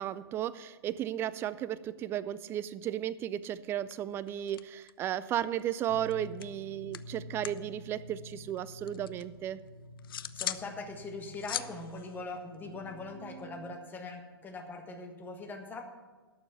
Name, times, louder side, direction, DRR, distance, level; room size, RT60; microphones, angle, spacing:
voice 1, 0.0-9.6, right 11 dB, 20° right, 17 dB, 0.3 m, -34 dB
sound 1, 3.4-3.6 3.9-5.1 5.4-7.7 7.9-9.3 9.7-10.7 11.0-13.1, left 10 dB, 65° left, 0.5 m, -41 dB
sound 2, 5.9-13.7, left 1 dB, 45° left, 1.9 m, -49 dB
voice 2, 10.3-15.8, left 3 dB, 15° left, 4 dB, 1.4 m, -41 dB
12.0 x 6.9 x 7.2 m, 1.4 s
hypercardioid pair, 125°, 13 cm